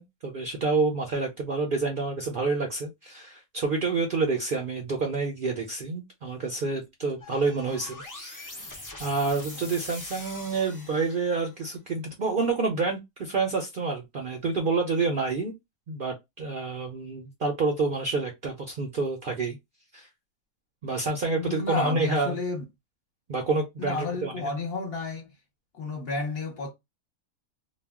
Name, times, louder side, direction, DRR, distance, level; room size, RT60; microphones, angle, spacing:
voice 1, 0.0-8.6 9.0-15.5 15.9-19.6 19.9-20.1 20.8-22.4 23.3-24.5, right 4 dB, 55° right, 0.6 m, -28 dB
sound 1, 7.2-11.5, left 2 dB, 30° left, 0.4 m, -43 dB
voice 2, 21.3-22.6 23.8-25.3 25.7-26.7, left 3 dB, 50° left, 0.9 m, -31 dB
2.3 x 2.1 x 3.4 m
omnidirectional pair, 1.4 m